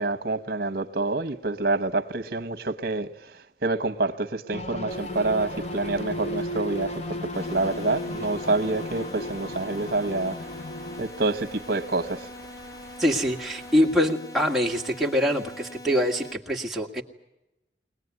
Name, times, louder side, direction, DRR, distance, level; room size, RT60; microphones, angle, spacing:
voice 1, 0.0-3.1 3.6-10.4 11.0-12.3, right 2 dB, 55° right, 1.3 m, -27 dB
sound 1, 4.5-11.1, left 1 dB, 35° left, 0.8 m, -34 dB
sound 2, 4.9-13.9, equal, 80° left, 7.6 m, -48 dB
sound 3, 7.3-16.3, left 1 dB, 55° left, 2.0 m, -43 dB
voice 2, 13.0-17.0, equal, ahead, 2.0 m, -24 dB
22.0 x 20.0 x 9.6 m
head